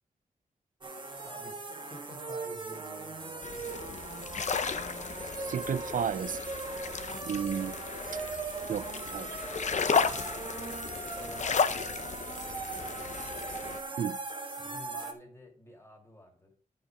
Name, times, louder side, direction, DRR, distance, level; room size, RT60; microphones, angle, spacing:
sound 1, 0.8-15.1, right 3 dB, 35° right, 1.4 m, -39 dB
voice 1, 1.2-3.8 10.8-13.2 14.6-16.5, left 1 dB, 20° left, 2.7 m, -51 dB
sound 2, 3.4-13.8, left 6 dB, 55° left, 0.7 m, -34 dB
voice 2, 5.4-6.4 7.3-7.8 8.1-8.2 8.7-9.3 14.0-14.2, right 8 dB, 70° right, 0.4 m, -33 dB
11.5 x 5.4 x 4.9 m
wide cardioid pair, 170°, 14 cm